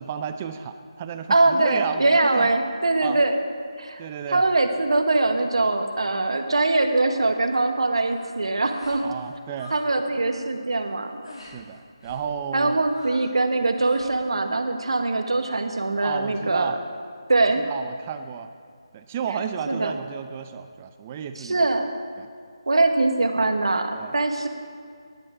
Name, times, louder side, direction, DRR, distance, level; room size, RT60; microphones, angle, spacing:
voice 1, 0.0-2.5 3.0-3.2 4.0-4.5 9.0-9.7 11.4-12.8 16.0-16.8 17.6-18.5 18.9-21.6 22.2-22.3 23.9-24.1, right 7 dB, 20° right, 9 dB, 0.5 m, -32 dB
voice 2, 1.3-3.4 3.8-4.0 4.3-9.0 9.7-11.1 12.5-16.7 17.3-17.6 19.7-20.0 21.4-21.9 22.7-24.5, right 2 dB, 75° right, 6 dB, 1.3 m, -22 dB
sound 1, 8.0-8.3 8.7-9.1 9.3-9.9 10.2-10.5 11.2-11.6 12.0-12.3 12.9-13.4 13.7-14.2, left 2 dB, 70° left, 2.4 m, -44 dB
12.5 x 11.0 x 5.0 m, 2.1 s
figure-of-eight pair, 160°, 3 cm